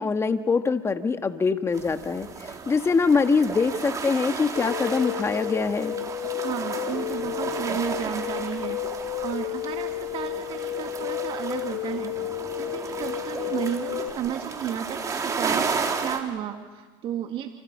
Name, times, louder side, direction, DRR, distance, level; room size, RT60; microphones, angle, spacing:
voice 1, 0.0-6.0, left 4 dB, 20° left, 8 dB, 1.6 m, -24 dB
sound 1, 1.7-16.2, right 5 dB, 30° right, 3.8 m, -33 dB
sound 2, 4.6-14.1, left 13 dB, 65° left, 3.5 m, -32 dB
voice 2, 6.4-12.1 12.6-17.5, right 10 dB, 45° right, 4 dB, 2.1 m, -33 dB
30.0 x 29.0 x 5.5 m, 1.3 s
supercardioid pair, 100°, 12 cm